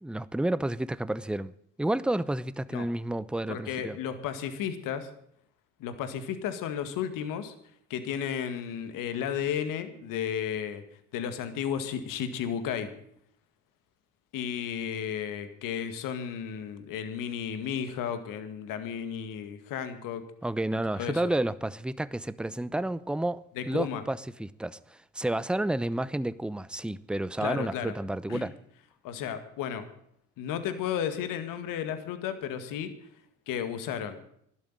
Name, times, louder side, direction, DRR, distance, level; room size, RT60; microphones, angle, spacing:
voice 1, 0.0-1.5 1.8-4.0 20.4-28.5, right 1 dB, 5° right, 0.8 m, -30 dB
voice 2, 3.5-5.1 5.8-7.5 7.9-10.8 11.1-12.9 14.3-20.2 21.0-21.2 23.6-24.0 27.4-27.9 28.3-28.5 29.0-29.9 30.4-32.9 33.5-34.2, left 8 dB, 70° left, 2.0 m, -33 dB
12.5 x 12.0 x 9.1 m
hypercardioid pair, 60°, 34 cm